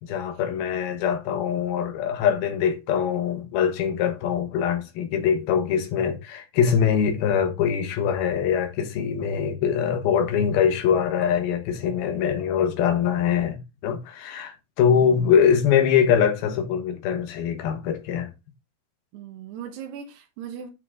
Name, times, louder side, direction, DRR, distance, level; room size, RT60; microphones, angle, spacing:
voice 1, 0.0-18.3, left 8 dB, 70° left, 3.3 m, -23 dB
voice 2, 19.1-20.7, right 8 dB, 80° right, 3.2 m, -38 dB
8.5 x 5.9 x 3.7 m
omnidirectional pair, 4.7 m